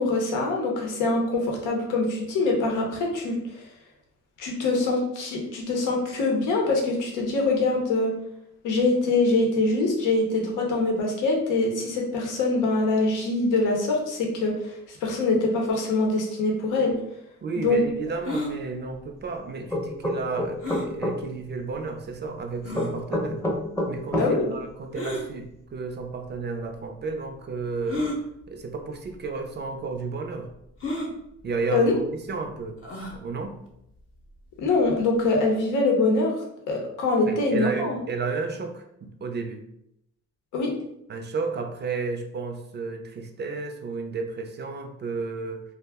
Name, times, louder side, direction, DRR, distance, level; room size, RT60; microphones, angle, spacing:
voice 1, 0.0-3.7 4.4-8.1 8.6-17.0 17.6-17.8 24.2-24.5 31.7-31.9 34.6-36.3 36.7-38.0 40.5-40.7, left 3 dB, 90° left, 0 dB, 0.7 m, -24 dB
voice 2, 17.4-23.4 23.9-28.1 28.5-30.5 31.4-33.6 37.3-39.6 41.1-45.6, right 4 dB, 35° right, 5 dB, 0.4 m, -32 dB
sound 1, 18.2-18.5 20.6-20.9 21.7-21.8 22.6-22.9 24.9-25.3 26.3-26.4 27.9-28.2 29.1-29.3 29.5-29.6 30.8-31.1 32.8-33.2, left 1 dB, 45° left, 0.7 m, -30 dB
sound 2, 19.7-21.2 22.7-24.3, left 1 dB, 10° left, 0.6 m, -26 dB
2.3 x 2.1 x 3.4 m, 0.77 s
cardioid pair, 90°, 30 cm